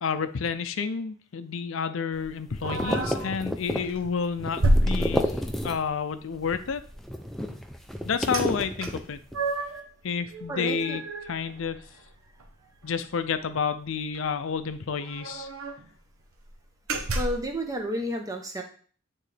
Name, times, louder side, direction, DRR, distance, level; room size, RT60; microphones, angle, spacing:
voice 1, 0.0-5.4 5.6-6.8 8.1-9.2 10.0-11.0 11.3-11.8 12.8-15.5, left 6 dB, 70° left, 11 dB, 0.5 m, -30 dB
sound 1, 2.1-6.0 6.3-9.5, equal, ahead, 0.4 m, -32 dB
sound 2, 2.6-3.3 3.8-4.0 4.6-5.7 8.3-8.5 8.8-9.9 10.3-12.1 12.4-12.5 12.8-13.1 14.1-14.2 14.5-14.6 15.0-15.9 16.3-16.5 16.9-17.5, right 1 dB, 85° right, 0.9 m, -29 dB
voice 2, 10.5-11.0 17.1-18.6, equal, 15° right, 3 dB, 0.8 m, -31 dB
8.9 x 3.8 x 3.3 m, 0.44 s
head